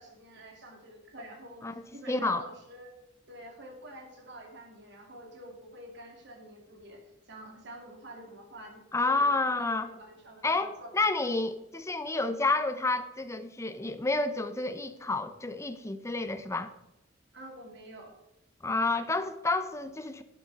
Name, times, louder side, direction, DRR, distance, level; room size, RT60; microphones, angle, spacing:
voice 1, 0.0-1.7 1.9-2.9 3.3-7.0 7.3-10.9 17.3-18.1, right 1 dB, 60° right, 2 dB, 2.5 m, -48 dB
voice 2, 2.1-2.5 8.9-9.9 10.4-16.7 18.6-20.2, left 3 dB, 15° left, 10 dB, 0.7 m, -29 dB
12.0 x 9.8 x 4.1 m, 0.90 s
head